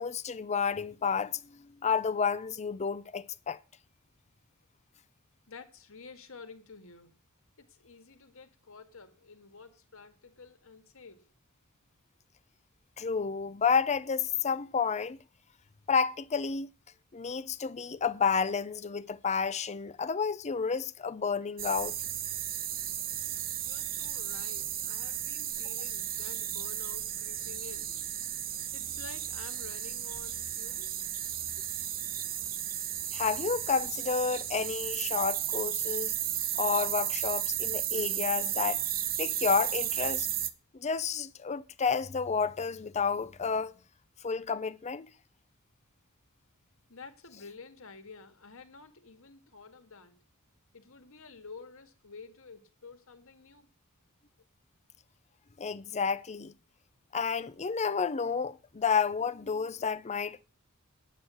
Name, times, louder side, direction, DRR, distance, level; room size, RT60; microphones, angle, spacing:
voice 1, 0.0-3.6 13.0-15.2 15.9-16.7 17.1-22.0 33.1-36.1 36.6-38.8 39.2-40.3 40.7-43.7 44.2-45.1 55.6-56.5 57.1-60.4, left 6 dB, 30° left, 0.6 m, -30 dB
voice 2, 5.5-7.1 7.6-11.3 23.6-27.9 28.7-31.1 46.9-50.2 50.7-53.7, left 4 dB, 70° left, 1.9 m, -50 dB
sound 1, 21.6-40.5, right 11 dB, 45° right, 0.9 m, -34 dB
9.5 x 9.3 x 6.3 m
head